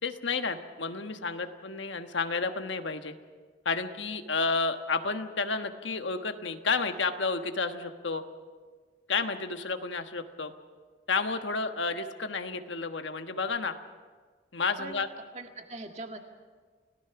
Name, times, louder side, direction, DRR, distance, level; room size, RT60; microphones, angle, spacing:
voice 1, 0.0-3.1 3.6-8.2 9.1-10.5 11.1-13.7 14.5-15.1, left 4 dB, 90° left, 7 dB, 1.4 m, -31 dB
voice 2, 15.3-16.2, right 2 dB, 40° right, 4 dB, 2.0 m, -41 dB
29.5 x 18.0 x 5.9 m, 1.5 s
head